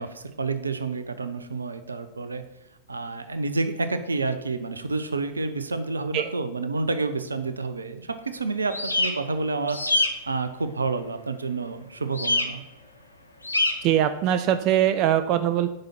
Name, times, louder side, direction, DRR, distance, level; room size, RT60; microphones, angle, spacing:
voice 1, 0.0-2.4 2.9-9.8 10.3-12.6, right 3 dB, 75° right, 11 dB, 0.8 m, -29 dB
sound 1, 8.7-9.1 9.7-10.1 12.2-12.5 13.4-13.7, left 2 dB, 85° left, 0.9 m, -23 dB
voice 2, 13.8-15.7, right 11 dB, 40° right, 11 dB, 0.4 m, -22 dB
9.0 x 5.5 x 5.7 m, 0.94 s
figure-of-eight pair, 90°, 0 cm